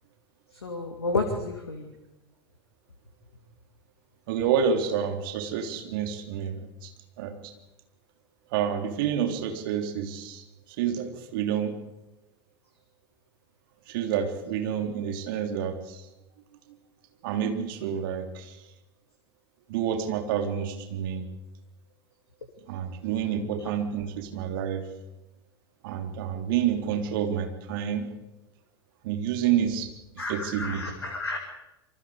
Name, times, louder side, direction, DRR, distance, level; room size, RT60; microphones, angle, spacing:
voice 1, 0.5-1.9 30.2-31.4, left 2 dB, 80° left, 4 dB, 2.6 m, -31 dB
voice 2, 4.3-6.9 7.2-7.5 8.5-11.8 13.9-16.0 17.2-18.6 19.7-21.3 22.7-24.8 25.8-28.1 29.0-29.9 30.3-30.8, right 8 dB, 55° right, 5 dB, 3.4 m, -29 dB
27.5 x 24.0 x 5.0 m, 0.95 s
figure-of-eight pair, 85°, 13 cm